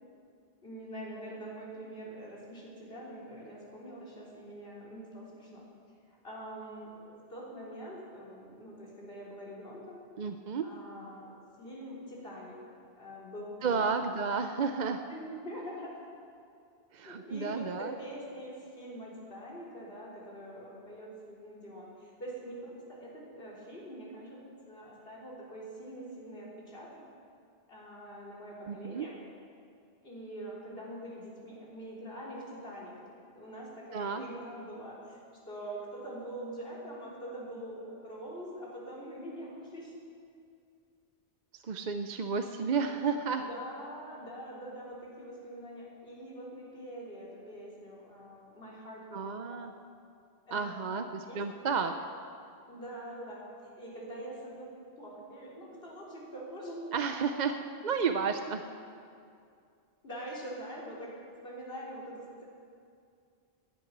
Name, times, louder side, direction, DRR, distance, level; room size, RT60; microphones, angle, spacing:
voice 1, 0.6-5.6 6.1-10.0 10.6-14.0 15.1-16.0 17.0-27.0 27.7-29.2 30.0-32.9 33.2-35.2 35.5-39.9 43.4-49.7 50.5-51.4 51.8-51.9 52.7-56.9 60.0-61.1 61.4-62.4, right 1 dB, 70° left, -5 dB, 3.9 m, -44 dB
voice 2, 10.2-10.7 13.6-15.0 16.9-17.9 28.7-29.1 33.9-34.2 41.6-43.5 49.1-49.7 50.5-51.9 56.9-58.6, right 5 dB, 50° right, 7 dB, 0.7 m, -32 dB
18.5 x 11.0 x 6.0 m, 2.4 s
omnidirectional pair, 1.0 m